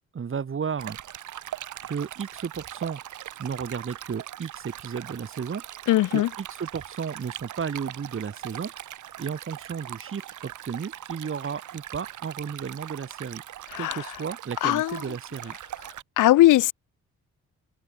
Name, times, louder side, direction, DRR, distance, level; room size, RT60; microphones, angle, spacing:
voice 1, 0.1-1.0 1.8-3.0 3.4-5.6 6.1-8.7 9.2-13.4 13.8-15.6, right 6 dB, 45° right, 5.4 m, -33 dB
Stream, 0.8-16.0, right 12 dB, 75° right, 7.5 m, -40 dB
voice 2, 5.9-6.3 13.7-14.1 14.6-15.0 16.2-16.7, left 15 dB, 85° left, 4.4 m, -19 dB
open air
cardioid pair, 90°, 30 cm